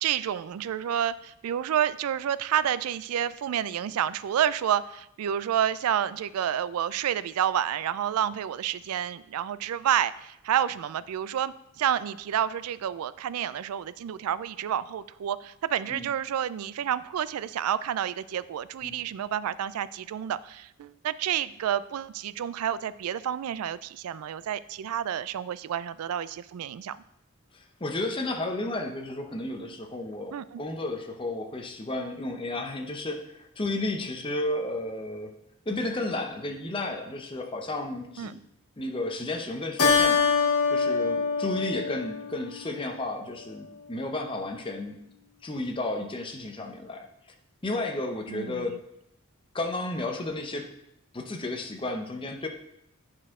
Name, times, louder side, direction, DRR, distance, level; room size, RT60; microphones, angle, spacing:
voice 1, 0.0-27.0 30.3-30.6 38.2-38.3 48.3-48.8, right 10 dB, 85° right, 17 dB, 0.3 m, -29 dB
voice 2, 27.5-35.3 35.7-38.4 38.8-45.0 45.4-47.1 47.6-48.9 49.5-50.7 51.1-52.5, left 2 dB, 25° left, 4 dB, 0.7 m, -33 dB
Keyboard (musical), 39.8-42.7, left 5 dB, 75° left, 1.4 m, -24 dB
9.0 x 4.4 x 3.6 m, 0.79 s
head